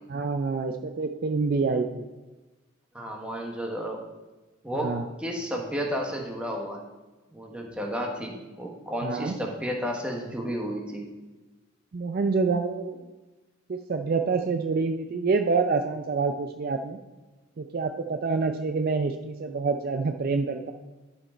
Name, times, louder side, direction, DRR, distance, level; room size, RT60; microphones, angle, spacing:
voice 1, 0.1-2.1 4.8-5.1 9.0-9.4 11.9-13.0 13.7-17.0 17.6-20.7, right 4 dB, 45° right, 6 dB, 0.4 m, -27 dB
voice 2, 2.9-4.0 4.6-6.8 7.3-11.1, equal, 5° right, 0 dB, 1.1 m, -32 dB
11.5 x 4.7 x 4.4 m, 1.2 s
head